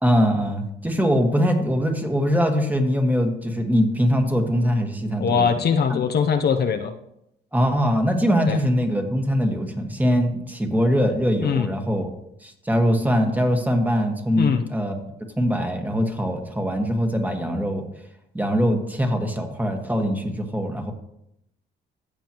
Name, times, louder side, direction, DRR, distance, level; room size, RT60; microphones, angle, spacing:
voice 1, 0.0-5.5 5.9-6.0 7.5-12.1 12.4-15.0 15.4-17.8 18.3-20.9, equal, 10° right, 3 dB, 1.6 m, -22 dB
voice 2, 5.2-6.9 8.5-8.6 11.4-11.7 14.4-14.6, left 6 dB, 55° left, 6 dB, 0.8 m, -21 dB
15.0 x 7.0 x 3.0 m, 0.80 s
cardioid pair, 90°, 20 cm